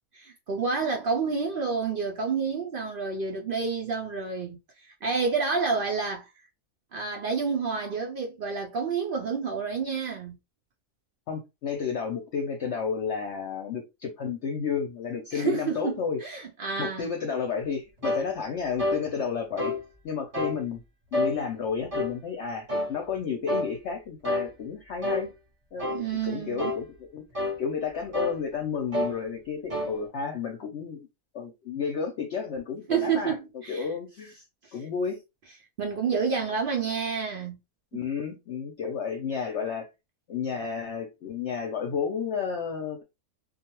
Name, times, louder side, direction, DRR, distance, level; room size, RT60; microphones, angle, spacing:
voice 1, 0.2-6.3 6.9-10.4 15.3-17.1 25.9-26.7 32.9-33.9 34.6-34.7 35.8-37.6 37.9-38.0, right 5 dB, 75° right, 0.5 m, -29 dB
voice 2, 11.3-16.2 16.8-19.7 20.0-20.8 21.1-25.3 25.7-31.1 31.3-33.3 33.7-34.4 34.7-35.2 37.9-39.9 40.3-43.0, left 6 dB, 60° left, 0.8 m, -32 dB
sound 1, 18.0-18.3 18.8-19.0 19.6-19.8 20.3-20.6 21.1-21.3 21.9-22.1 22.7-22.9 23.5-23.7 24.2-24.5 25.0-25.3 25.8-26.0 26.6-26.8 27.3-27.6 28.1-28.4 28.9-29.2 29.7-29.9, left 1 dB, 30° right, 0.8 m, -28 dB
2.4 x 2.3 x 2.9 m
omnidirectional pair, 1.5 m